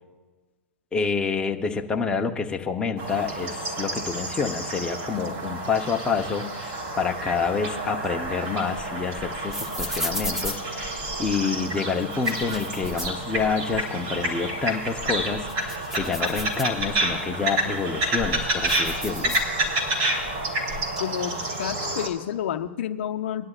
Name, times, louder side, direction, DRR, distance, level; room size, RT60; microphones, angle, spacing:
voice 1, 0.9-10.9 11.2-19.4, left 5 dB, 15° left, 3 dB, 0.8 m, -28 dB
sound 1, 3.0-22.1, right 1 dB, 40° right, 3.5 m, -29 dB
sound 2, 8.0-11.4 12.0-13.8 14.2-14.3 14.8-17.2 17.7-19.9 20.2-21.0, left 1 dB, 5° right, 1.1 m, -36 dB
voice 2, 21.0-23.5, left 10 dB, 60° left, 8 dB, 0.6 m, -30 dB
21.0 x 11.5 x 2.4 m, 1.3 s
hypercardioid pair, 115°, 7 cm